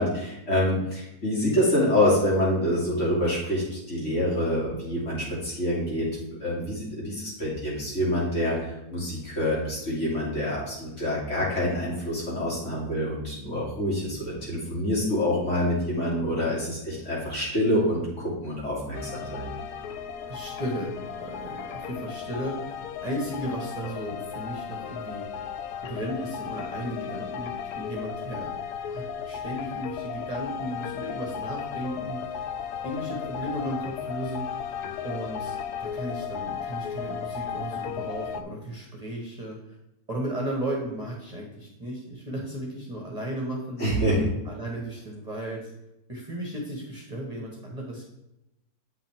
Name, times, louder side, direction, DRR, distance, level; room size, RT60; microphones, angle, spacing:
voice 1, 0.0-6.1 6.4-19.5 43.8-44.3, left 1 dB, 50° left, -6 dB, 3.2 m, -26 dB
sound 1, 18.9-38.4, left 7 dB, 85° left, 1.1 m, -35 dB
voice 2, 20.3-22.7 23.0-25.2 25.8-28.5 28.9-32.4 32.8-34.4 35.0-39.8 40.1-43.9 44.4-45.7 46.1-48.0, equal, 25° right, -2 dB, 1.4 m, -35 dB
8.4 x 5.7 x 3.6 m, 0.87 s
omnidirectional pair, 1.7 m